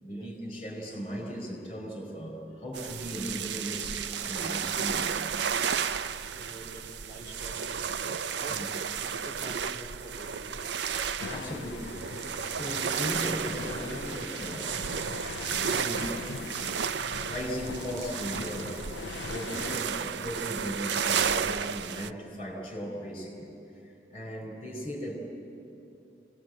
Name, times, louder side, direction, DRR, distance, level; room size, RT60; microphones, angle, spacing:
voice 1, 0.0-5.3 8.5-8.7 11.1-12.0 12.5-14.8 15.6-16.4 17.2-18.9 19.3-23.5 24.1-25.2, equal, 30° left, 0 dB, 5.1 m, -37 dB
sound 1, 2.7-22.1, right 7 dB, 75° right, 0.5 m, -33 dB
voice 2, 6.4-7.7 8.4-10.6, right 1 dB, 20° right, -3 dB, 3.0 m, -46 dB
sound 2, 11.2-19.8, left 4 dB, 85° left, 0.5 m, -41 dB
25.5 x 19.5 x 8.0 m, 2.8 s
head